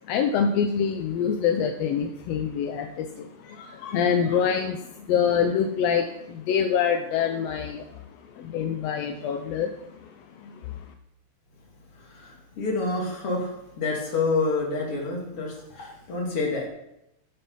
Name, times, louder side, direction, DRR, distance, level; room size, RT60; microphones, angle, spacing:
voice 1, 0.1-8.0 8.4-9.8 10.0-10.1 10.4-10.8, left 7 dB, 75° left, 6 dB, 1.6 m, -26 dB
voice 2, 12.1-13.5 13.8-16.7, left 3 dB, 50° left, -2 dB, 3.2 m, -28 dB
15.0 x 5.5 x 5.7 m, 0.85 s
omnidirectional pair, 3.3 m